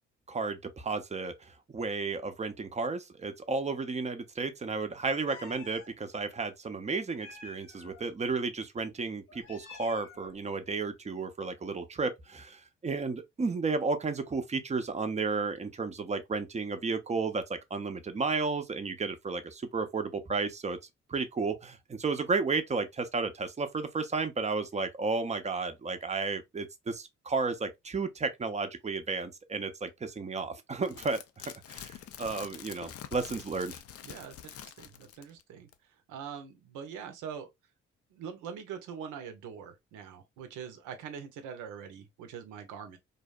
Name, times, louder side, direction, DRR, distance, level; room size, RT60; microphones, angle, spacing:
voice 1, 0.3-20.8 21.1-31.2 31.7-33.8, right 4 dB, 25° right, 0.5 m, -33 dB
Meow, 5.3-5.9 7.1-8.0 9.3-10.4, left 4 dB, 85° left, 0.8 m, -50 dB
sound 1, 30.8-35.4 35.7-35.8, left 10 dB, 50° left, 0.4 m, -46 dB
voice 2, 34.0-35.7 36.1-37.5 38.1-43.0, right 7 dB, 80° right, 0.6 m, -43 dB
2.7 x 2.0 x 2.3 m
hypercardioid pair, 50°, 30 cm